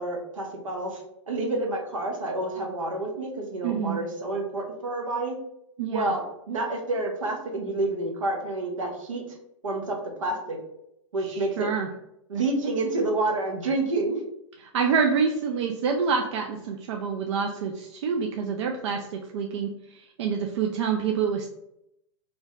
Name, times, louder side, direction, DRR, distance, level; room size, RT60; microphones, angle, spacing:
voice 1, 0.0-5.4 5.9-9.4 9.6-10.6 11.1-11.7 12.3-14.2, right 2 dB, 80° right, 2 dB, 0.8 m, -29 dB
voice 2, 3.6-4.0 5.8-6.1 11.3-11.9 14.7-21.5, right 6 dB, 65° right, 2 dB, 0.4 m, -27 dB
2.6 x 2.1 x 3.5 m, 0.81 s
hypercardioid pair, 110°, 16 cm